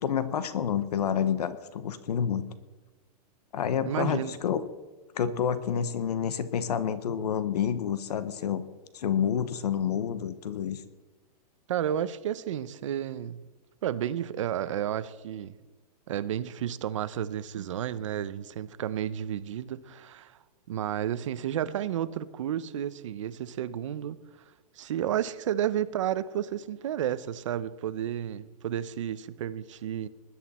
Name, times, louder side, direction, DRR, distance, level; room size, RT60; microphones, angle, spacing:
voice 1, 0.0-2.4 3.5-4.7 5.1-8.6 8.9-10.8, left 8 dB, 75° left, 1.1 m, -28 dB
voice 2, 3.8-4.4 11.7-13.5 13.8-15.6 16.1-20.4 20.7-24.2 24.8-30.1, right 10 dB, 50° right, 0.8 m, -32 dB
20.0 x 11.5 x 4.3 m
supercardioid pair, 180°, 20 cm